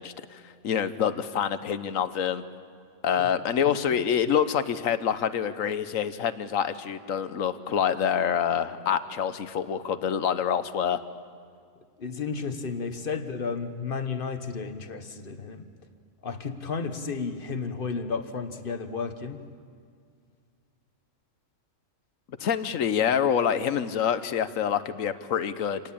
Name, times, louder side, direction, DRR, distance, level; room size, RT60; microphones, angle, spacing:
voice 1, 0.0-2.4 3.0-11.0 22.4-25.8, left 8 dB, 85° left, 12 dB, 1.3 m, -26 dB
voice 2, 12.0-15.7 16.2-19.5, left 5 dB, 45° left, 9 dB, 1.4 m, -33 dB
27.5 x 19.0 x 8.6 m, 2.2 s
omnidirectional pair, 1.3 m